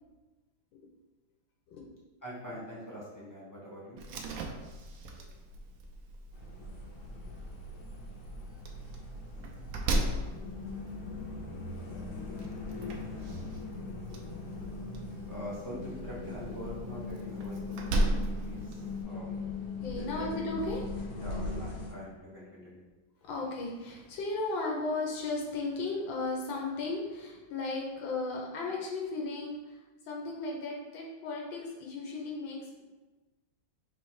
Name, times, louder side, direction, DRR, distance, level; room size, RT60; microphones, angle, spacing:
voice 1, 2.2-4.0 15.3-19.3 19.9-20.3 21.2-22.9, left 1 dB, 30° left, -7 dB, 0.3 m, -44 dB
Slam, 4.0-19.0, right 1 dB, 85° right, 0.7 m, -37 dB
sound 1, 6.3-21.9, left 3 dB, 65° left, 1.3 m, -40 dB
voice 2, 10.0-10.8 14.3-14.4 19.8-20.9 21.4-21.6 23.2-32.8, left 3 dB, 85° left, -1 dB, 1.5 m, -36 dB
3.6 x 3.2 x 4.6 m, 1.2 s
omnidirectional pair, 2.1 m